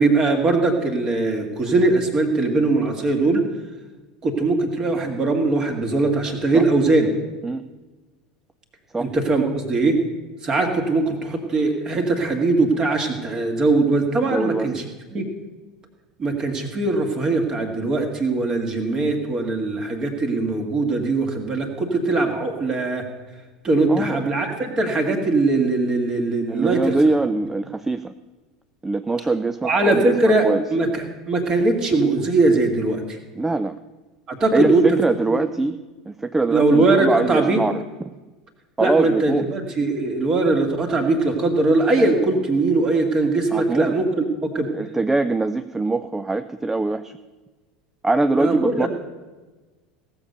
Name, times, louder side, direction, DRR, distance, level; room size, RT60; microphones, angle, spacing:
voice 1, 0.0-3.4 4.2-7.1 9.0-10.0 10.4-14.8 15.1-15.3 16.2-23.0 23.6-26.9 29.6-33.2 34.3-34.9 35.3-35.4 36.5-37.6 38.8-44.7 48.4-48.9, right 3 dB, 30° right, 3 dB, 2.3 m, -21 dB
voice 2, 14.3-14.7 23.9-24.2 26.5-28.1 28.8-30.6 33.4-33.8 34.5-35.8 36.1-38.1 38.8-39.5 43.5-43.9 44.7-47.2 48.0-48.9, right 3 dB, 10° right, 10 dB, 0.4 m, -23 dB
17.0 x 7.0 x 6.7 m, 1.2 s
figure-of-eight pair, 75°, 2 cm